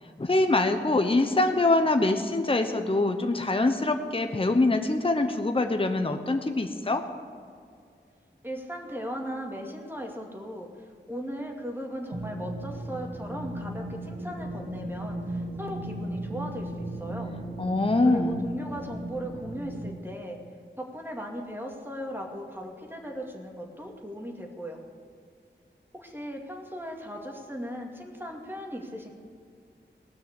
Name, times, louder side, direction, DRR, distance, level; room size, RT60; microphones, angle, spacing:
voice 1, 0.2-7.0 17.6-18.5, left 2 dB, 30° left, 6 dB, 1.0 m, -24 dB
voice 2, 8.4-10.7 11.1-17.3 18.0-20.4 20.8-24.8 25.9-29.1, equal, 10° right, 1 dB, 2.4 m, -37 dB
sound 1, 12.1-19.9, right 1 dB, 75° right, 2.2 m, -36 dB
18.0 x 6.4 x 8.2 m, 2.3 s
wide cardioid pair, 60°, 20 cm